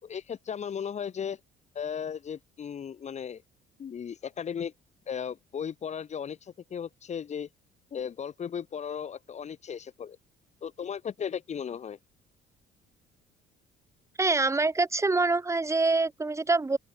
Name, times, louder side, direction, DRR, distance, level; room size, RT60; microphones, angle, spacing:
voice 1, 0.0-1.4 1.7-3.4 3.8-4.7 5.1-7.5 7.9-10.2 10.6-12.0, left 7 dB, 40° left, 5.0 m, -36 dB
voice 2, 14.2-16.8, right 3 dB, 15° right, 3.4 m, -25 dB
open air
cardioid pair, 110°, 17 cm